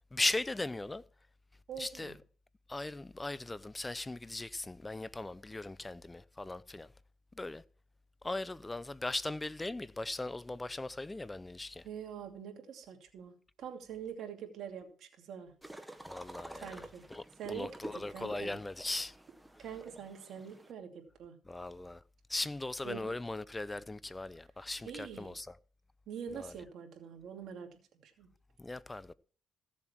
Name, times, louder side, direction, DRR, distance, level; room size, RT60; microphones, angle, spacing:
voice 1, 0.1-1.0 1.8-2.2 2.7-6.9 7.3-7.6 8.2-11.9 16.1-16.8 17.1-19.2 21.4-22.0 22.3-25.6 26.3-26.5 28.6-29.1, left 2 dB, 15° left, 0.6 m, -38 dB
voice 2, 1.7-2.1 11.8-13.3 13.6-15.5 16.6-17.0 17.4-18.6 19.6-21.4 22.8-23.2 24.8-25.3 26.1-27.7 28.0-28.3, right 8 dB, 75° right, 2.6 m, -45 dB
sound 1, 15.6-20.7, right 1 dB, 5° right, 1.3 m, -50 dB
16.0 x 7.3 x 4.6 m
cardioid pair, 90°, 0 cm